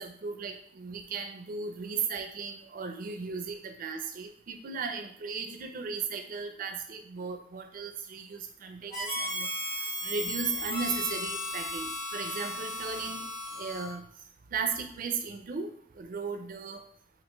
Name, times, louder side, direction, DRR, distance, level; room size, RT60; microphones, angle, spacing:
voice 1, 0.0-9.5 10.0-13.2 13.5-14.0 14.5-16.8, right 5 dB, 45° right, 6 dB, 0.4 m, -36 dB
Harmonica, 8.9-14.0, left 1 dB, 20° left, 0.9 m, -35 dB
4.3 x 2.5 x 3.0 m, 0.64 s
head